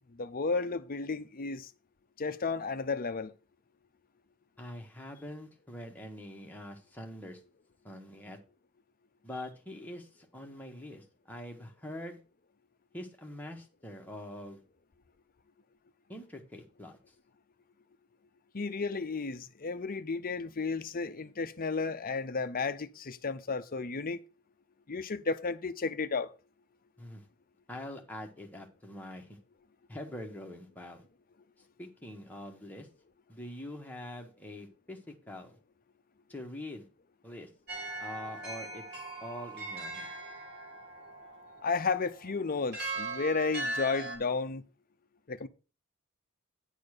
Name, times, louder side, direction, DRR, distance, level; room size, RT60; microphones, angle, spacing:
voice 1, 0.2-1.7 2.2-3.3 18.5-24.2 24.9-26.3 41.6-44.6 45.3-45.5, left 4 dB, 40° left, 0.7 m, -33 dB
voice 2, 4.6-7.4 7.8-8.4 9.2-12.2 12.9-14.6 16.1-17.0 27.0-27.3 27.7-29.4 29.9-31.0 31.8-32.9 33.3-35.6 36.3-36.9 37.2-37.5 38.0-38.8 39.2-40.1, left 1 dB, 10° left, 1.6 m, -44 dB
sound 1, 37.7-44.2, right 2 dB, 50° right, 3.7 m, -40 dB
9.8 x 4.3 x 6.6 m
head